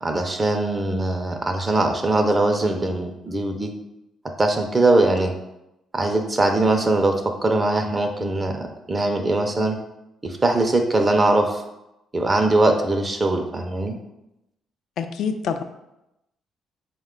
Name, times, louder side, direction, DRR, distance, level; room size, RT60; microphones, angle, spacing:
voice 1, 0.0-3.7 4.4-5.3 5.9-9.8 10.2-11.6 12.1-13.9, right 2 dB, 25° right, 4 dB, 0.5 m, -21 dB
voice 2, 15.0-15.6, left 6 dB, 75° left, 9 dB, 0.3 m, -26 dB
4.2 x 2.2 x 3.6 m, 0.89 s
cardioid pair, 90°, 0 cm